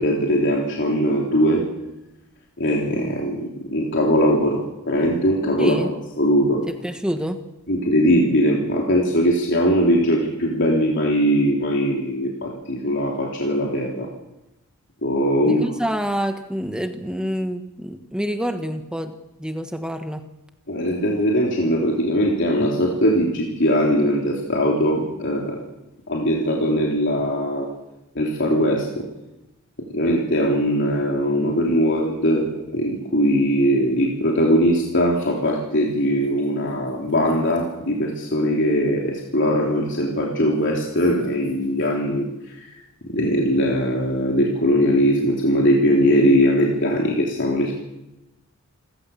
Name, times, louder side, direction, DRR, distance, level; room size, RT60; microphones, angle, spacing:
voice 1, 0.0-1.6 2.6-5.8 6.2-6.6 7.7-14.1 15.0-15.6 20.7-25.6 26.1-27.7 28.1-29.0 29.9-42.7 43.0-47.8, equal, 60° left, -2 dB, 3.4 m, -20 dB
voice 2, 5.6-5.9 6.7-7.4 15.4-19.1 19.4-20.2 36.8-36.9, equal, 5° right, 7 dB, 1.2 m, -27 dB
28.5 x 15.0 x 7.2 m, 0.96 s
head